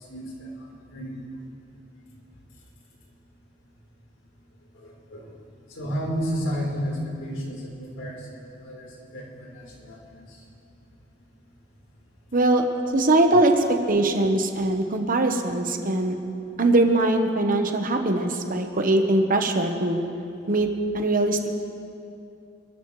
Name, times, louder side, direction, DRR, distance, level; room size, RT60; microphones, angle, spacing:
voice 1, 0.1-1.3 4.8-5.3 5.8-10.2, equal, 90° left, -3 dB, 3.9 m, -32 dB
voice 2, 12.3-12.6 12.9-16.2 16.6-20.0 20.5-20.7 20.9-21.4, right 2 dB, 45° right, 4 dB, 1.1 m, -21 dB
28.0 x 13.5 x 3.2 m, 2.6 s
head